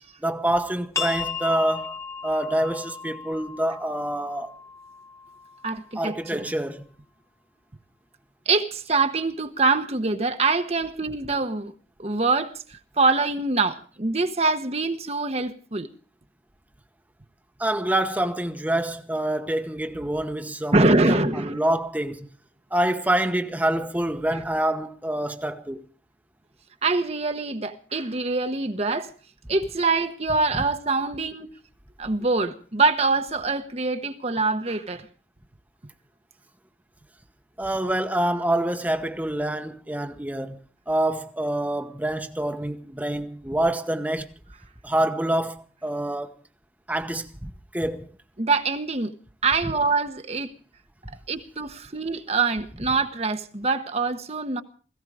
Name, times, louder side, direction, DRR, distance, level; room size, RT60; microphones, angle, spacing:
voice 1, 0.2-1.9 2.2-4.5 5.9-6.8 17.6-22.3 22.7-25.8 37.6-40.6 40.9-44.3 44.8-46.3 46.9-48.1, right 1 dB, 10° right, 0.9 m, -26 dB
sound 1, 0.9-6.3, left 6 dB, 15° left, 1.3 m, -36 dB
voice 2, 5.6-6.5 8.5-11.7 12.0-15.9 20.7-21.6 26.8-29.1 29.5-31.5 32.0-35.1 48.4-49.1 49.4-50.5 51.1-54.6, right 3 dB, 35° right, 1.0 m, -24 dB
18.0 x 16.5 x 4.8 m
head